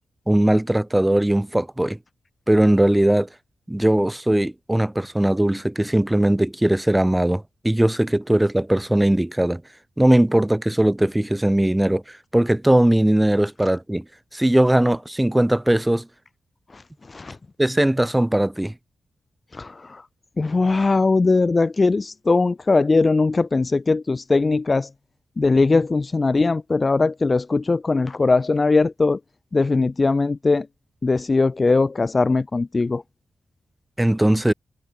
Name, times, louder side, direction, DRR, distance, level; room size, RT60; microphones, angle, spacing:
voice 1, 0.3-2.0 2.5-3.3 3.7-9.6 10.0-12.0 12.3-14.0 14.3-16.1 17.6-18.7 34.0-34.5, right 1 dB, 5° right, 0.6 m, -19 dB
voice 2, 19.5-20.0 20.4-24.9 25.4-29.2 29.5-30.7 31.0-33.0, left 3 dB, 25° left, 0.8 m, -20 dB
wide cardioid pair, 175°, 0 cm